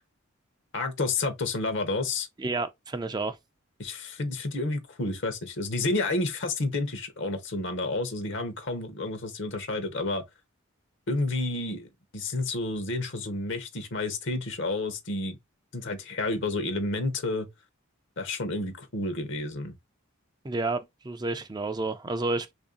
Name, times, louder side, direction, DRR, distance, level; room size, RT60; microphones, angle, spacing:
voice 1, 0.7-2.3 3.8-10.2 11.1-15.4 15.7-17.5 18.2-19.7, left 2 dB, 60° left, 0.8 m, -30 dB
voice 2, 2.4-3.4 20.4-22.5, right 3 dB, 20° right, 0.4 m, -30 dB
3.1 x 2.6 x 3.7 m
head